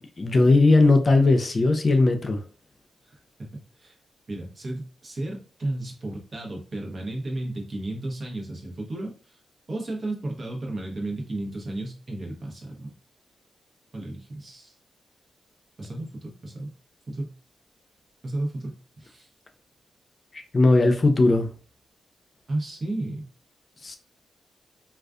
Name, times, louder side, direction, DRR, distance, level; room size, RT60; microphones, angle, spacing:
voice 1, 0.2-2.4 20.3-21.5 23.8-24.0, left 2 dB, 45° left, 0.4 m, -18 dB
voice 2, 4.3-9.1 9.7-12.9 13.9-14.7 15.8-16.7 17.1-17.3 18.2-19.3 22.5-23.3, right 2 dB, 50° right, 0.9 m, -33 dB
2.4 x 2.3 x 2.4 m
supercardioid pair, 50°, 0 cm